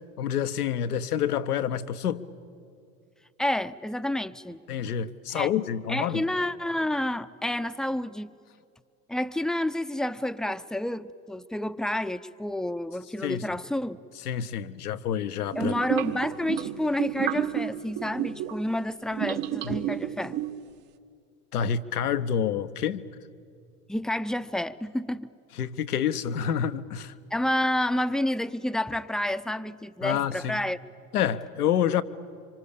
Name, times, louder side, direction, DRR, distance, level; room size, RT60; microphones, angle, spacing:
voice 1, 0.2-2.3 4.7-6.2 13.2-13.4 14.3-15.7 19.6-19.8 21.5-23.0 25.6-27.1 30.0-30.6 31.1-32.0, left 8 dB, 80° left, 1.0 m, -28 dB
voice 2, 3.4-4.6 5.3-5.5 5.9-8.3 9.1-14.0 15.5-20.4 23.9-25.3 27.3-30.8, left 1 dB, ahead, 0.7 m, -29 dB
sound 1, 15.5-18.6 19.1-20.7, right 12 dB, 60° right, 1.6 m, -31 dB
26.0 x 25.5 x 8.6 m
hypercardioid pair, 75°, 45 cm